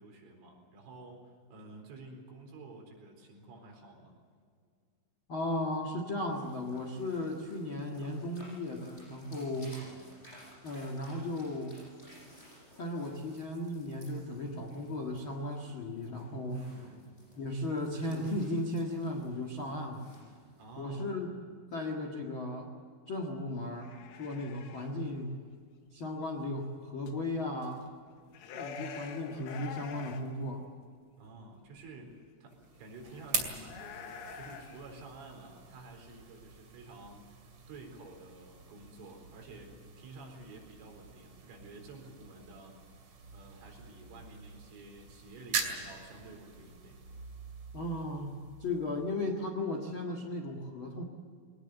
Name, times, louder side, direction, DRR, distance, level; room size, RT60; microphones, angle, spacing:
voice 1, 0.0-4.2 9.5-10.0 16.5-17.1 20.6-21.1 31.2-42.8 43.3-47.0, right 2 dB, 90° right, 1 dB, 6.8 m, -50 dB
voice 2, 5.3-9.7 10.6-11.8 12.8-16.6 17.3-20.0 20.8-21.3 21.7-22.7 23.1-25.3 25.9-27.8 28.5-30.6 47.7-51.0, left 1 dB, 60° left, 2 dB, 1.3 m, -36 dB
sound 1, 6.3-20.8, equal, 15° left, 8.0 m, -55 dB
sound 2, 23.8-25.0 27.1-27.2 27.6-27.9 28.2-30.3 30.6-30.7 31.9-32.0 33.1-34.9, left 5 dB, 85° left, 4.1 m, -46 dB
sound 3, 32.5-49.4, right 5 dB, 40° right, 2.7 m, -43 dB
22.0 x 19.5 x 8.1 m, 2.1 s
omnidirectional pair, 5.5 m